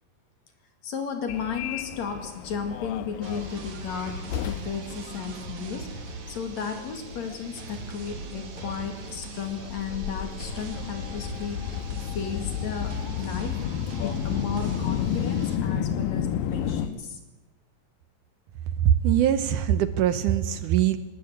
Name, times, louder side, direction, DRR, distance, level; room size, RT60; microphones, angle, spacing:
voice 1, 0.8-13.6 14.0-17.2, left 6 dB, 55° left, 6 dB, 3.3 m, -34 dB
Subway metro underground, 1.3-16.9, left 9 dB, 80° left, 2.6 m, -32 dB
sound 1, 3.2-15.6, right 5 dB, 55° right, 3.4 m, -41 dB
voice 2, 18.8-21.0, right 10 dB, 70° right, 12 dB, 2.1 m, -22 dB
19.0 x 19.0 x 8.5 m, 1.1 s
omnidirectional pair, 4.1 m